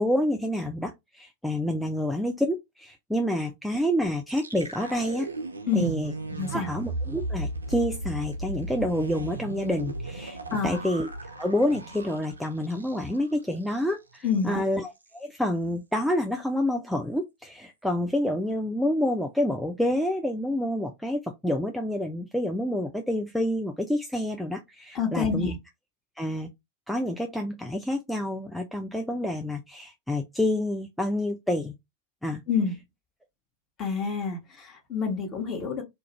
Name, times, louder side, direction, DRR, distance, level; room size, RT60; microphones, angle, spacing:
voice 1, 0.0-5.3 5.7-6.1 6.5-10.4 10.6-11.1 11.4-25.5 26.2-26.5 26.9-31.8 32.2-32.4, left 1 dB, ahead, 0.4 m, -28 dB
sound 1, 4.3-13.3 13.6-13.8 14.1-14.5, right 2 dB, 80° right, 0.4 m, -36 dB
voice 2, 6.3-6.7 10.5-10.8 14.2-14.6 24.9-25.6 32.5-32.7 33.8-35.8, left 5 dB, 30° left, 0.9 m, -27 dB
2.4 x 2.1 x 2.9 m
figure-of-eight pair, 90°, 0 cm